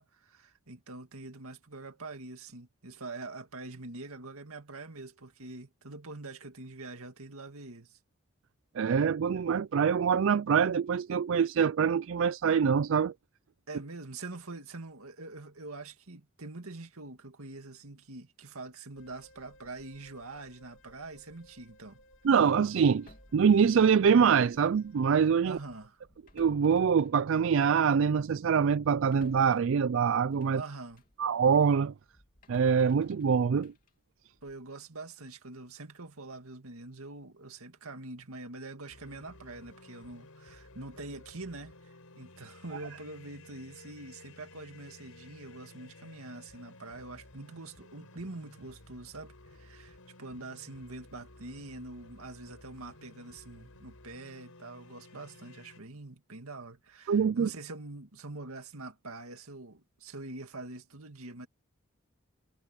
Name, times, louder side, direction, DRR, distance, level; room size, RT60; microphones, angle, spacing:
voice 1, 0.0-8.0 13.7-22.0 25.4-26.0 30.5-31.0 34.4-61.5, right 2 dB, 85° right, 2.1 m, -45 dB
voice 2, 8.8-13.1 22.2-25.6 26.4-30.6 31.2-31.9 32.5-33.7 57.1-57.5, right 6 dB, 65° right, 0.4 m, -25 dB
sound 1, 18.9-25.9, equal, 60° left, 3.1 m, -60 dB
sound 2, 22.9-24.9 25.2-25.4 26.0-31.2 31.6-34.7, left 1 dB, 40° left, 3.1 m, -61 dB
sound 3, 38.9-55.8, left 2 dB, 90° left, 5.3 m, -54 dB
head